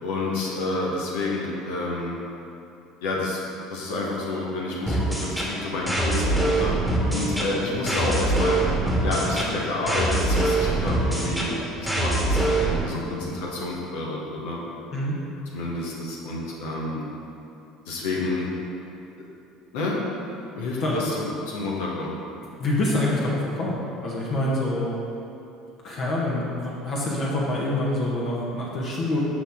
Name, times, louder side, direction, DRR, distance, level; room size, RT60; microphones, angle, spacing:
voice 1, 0.0-2.2 3.0-3.4 3.7-6.7 7.1-8.6 9.0-14.6 15.5-17.0 17.9-18.5 19.7-20.0 20.5-22.1, left 2 dB, 65° left, -3 dB, 1.2 m, -29 dB
sound 1, 4.9-12.9, right 2 dB, 5° left, 1.6 m, -24 dB
voice 2, 22.6-25.0 25.8-29.2, left 1 dB, 45° left, -5 dB, 1.4 m, -26 dB
12.0 x 4.2 x 3.7 m, 2.7 s
figure-of-eight pair, 65°, 0 cm